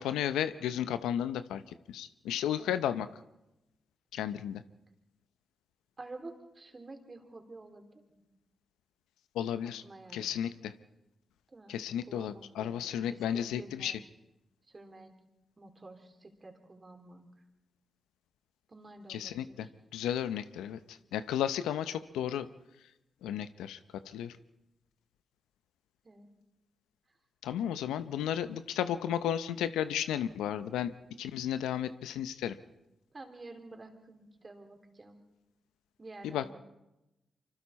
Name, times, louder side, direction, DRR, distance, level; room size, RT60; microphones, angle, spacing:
voice 1, 0.0-1.6 1.9-3.1 4.1-4.6 9.3-9.8 10.1-10.7 11.7-13.9 19.1-19.7 19.9-22.5 23.2-23.8 24.1-24.3 27.4-32.6 36.2-36.5, left 10 dB, 85° left, 13 dB, 0.6 m, -33 dB
voice 2, 6.0-8.2 9.6-10.3 11.5-14.0 14.7-15.1 15.6-17.3 18.7-19.7 26.0-26.3 33.1-35.2 36.0-36.5, right 2 dB, 40° right, 4 dB, 3.6 m, -50 dB
25.0 x 24.5 x 4.2 m, 0.96 s
supercardioid pair, 40°, 0 cm